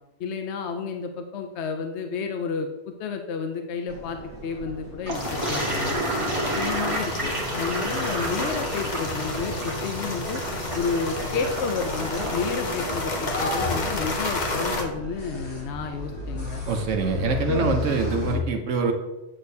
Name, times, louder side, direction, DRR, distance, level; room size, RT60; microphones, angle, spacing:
voice 1, 0.2-6.0 6.6-10.4 10.7-16.6 17.5-17.8, left 5 dB, 65° left, 5 dB, 0.8 m, -31 dB
sound 1, 3.9-18.4, left 2 dB, 25° left, 1.7 m, -36 dB
sound 2, 5.1-14.8, left 2 dB, 40° left, 1.0 m, -30 dB
Toilet flush, 5.1-13.6, right 1 dB, 25° right, 1.1 m, -32 dB
voice 2, 16.7-18.9, right 4 dB, 75° right, 3 dB, 1.1 m, -25 dB
8.7 x 6.4 x 2.7 m, 1.0 s
omnidirectional pair, 1.3 m